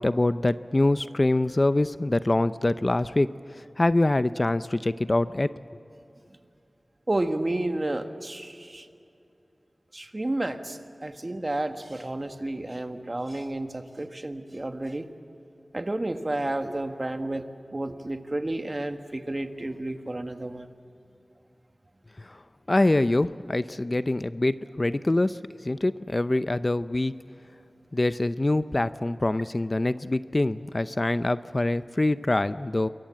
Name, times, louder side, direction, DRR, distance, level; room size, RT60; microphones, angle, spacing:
voice 1, 0.0-3.3 3.8-5.5 22.3-22.4 22.7-25.4 25.6-27.2 27.9-32.9, left 2 dB, 35° left, 13 dB, 0.5 m, -24 dB
voice 2, 7.1-8.9 9.9-15.1 15.7-17.4 17.7-20.7, right 1 dB, 35° right, 7 dB, 1.4 m, -31 dB
28.0 x 22.0 x 7.6 m, 2.7 s
wide cardioid pair, 70°, 0 cm